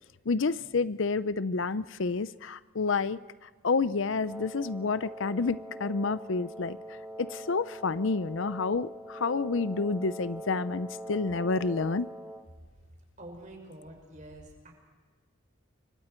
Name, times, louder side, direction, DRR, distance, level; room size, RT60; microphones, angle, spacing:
voice 1, 0.3-3.2 3.6-6.8 7.2-12.1, left 4 dB, 65° left, 15 dB, 0.6 m, -29 dB
Wind instrument woodwind instrument, 4.2-12.5, equal, 10° right, 1.3 m, -43 dB
voice 2, 13.2-14.7, right 1 dB, 35° right, 2 dB, 5.8 m, -47 dB
29.0 x 24.5 x 4.5 m, 1.4 s
head